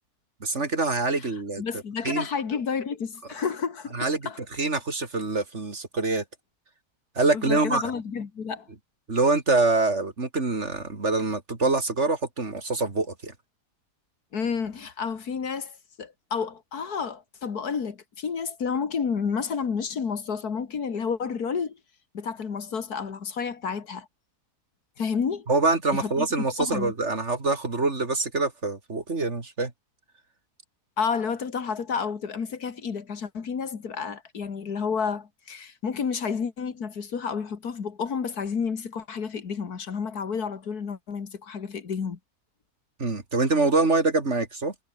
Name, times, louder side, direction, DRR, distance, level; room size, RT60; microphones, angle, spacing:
voice 1, 0.4-1.6 2.0-2.2 3.9-4.3 4.6-6.2 7.1-7.8 9.1-13.3 25.5-29.7 43.0-44.7, right 3 dB, 45° right, 3.1 m, -25 dB
voice 2, 1.6-4.4 7.3-8.7 14.3-21.8 22.1-24.1 25.0-25.5 25.9-26.9 31.0-42.2, left 6 dB, 70° left, 2.3 m, -30 dB
omnidirectional pair, 1.7 m